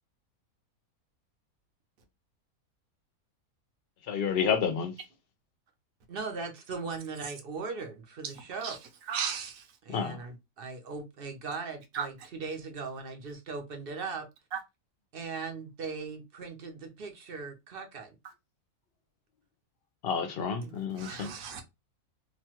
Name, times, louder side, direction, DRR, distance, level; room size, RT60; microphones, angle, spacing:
voice 1, 4.1-4.9 9.9-10.2 20.0-21.3, left 6 dB, 60° left, 0.6 m, -30 dB
voice 2, 6.1-8.8 9.8-14.3 15.1-18.2 20.6-20.7, right 4 dB, 50° right, 0.7 m, -39 dB
voice 3, 9.1-9.7 11.9-12.1 14.5-14.6 21.0-21.6, right 7 dB, 70° right, 1.1 m, -34 dB
2.9 x 2.3 x 2.9 m
omnidirectional pair, 1.5 m